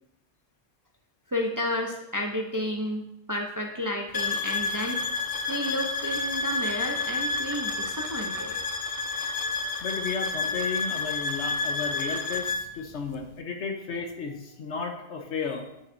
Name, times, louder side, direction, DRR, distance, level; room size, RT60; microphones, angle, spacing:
voice 1, 1.3-5.0 5.5-8.5, left 1 dB, 25° right, 2 dB, 0.5 m, -31 dB
sound 1, 4.1-12.7, left 3 dB, 50° left, 0.4 m, -30 dB
voice 2, 9.8-15.7, left 5 dB, 85° left, 3 dB, 1.3 m, -34 dB
8.8 x 6.9 x 2.7 m, 0.87 s
omnidirectional pair, 1.2 m